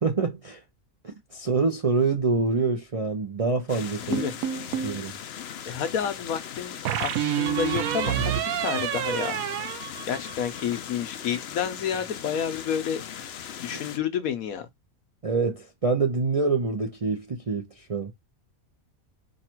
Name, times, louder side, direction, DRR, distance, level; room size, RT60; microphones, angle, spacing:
voice 1, 0.0-0.6 1.0-4.2 4.8-5.1 13.7-13.8 15.2-18.1, right 4 dB, 40° right, 0.5 m, -26 dB
sound 1, 3.7-14.0, left 9 dB, 60° left, 0.7 m, -39 dB
sound 2, 4.1-5.0 6.9-10.6, right 11 dB, 75° right, 1.0 m, -28 dB
voice 2, 5.6-9.4 10.1-13.0 13.6-14.7, left 8 dB, 80° left, 1.2 m, -30 dB
4.7 x 2.4 x 4.4 m
omnidirectional pair, 1.5 m